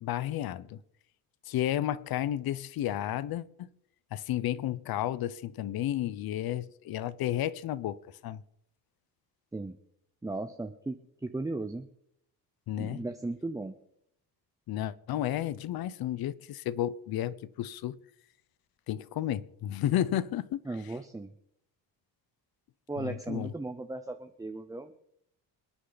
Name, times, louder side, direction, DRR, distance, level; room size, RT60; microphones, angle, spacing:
voice 1, 0.0-0.8 1.5-3.4 4.1-8.4 12.7-13.0 14.7-18.0 18.9-20.6 23.0-23.5, left 12 dB, 65° left, 0.8 m, -32 dB
voice 2, 10.2-11.9 12.8-13.8 20.6-21.3 22.9-24.9, right 2 dB, 10° right, 0.7 m, -36 dB
27.0 x 9.8 x 4.0 m
cardioid pair, 140°, 39 cm